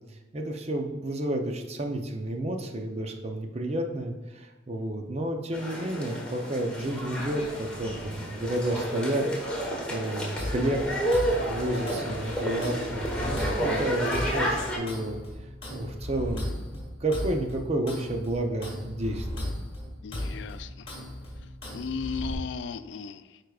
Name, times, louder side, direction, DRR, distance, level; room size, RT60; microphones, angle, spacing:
voice 1, 0.3-11.0 11.5-15.2 15.7-19.5, right 1 dB, 35° right, 3 dB, 0.6 m, -31 dB
sound 1, 5.5-14.8, right 1 dB, 5° left, 1.2 m, -31 dB
sound 2, 10.4-22.3, left 1 dB, 30° left, 1.8 m, -37 dB
voice 2, 20.0-20.9 21.7-23.4, left 5 dB, 65° left, 12 dB, 0.3 m, -35 dB
9.6 x 4.6 x 2.4 m, 1.3 s
head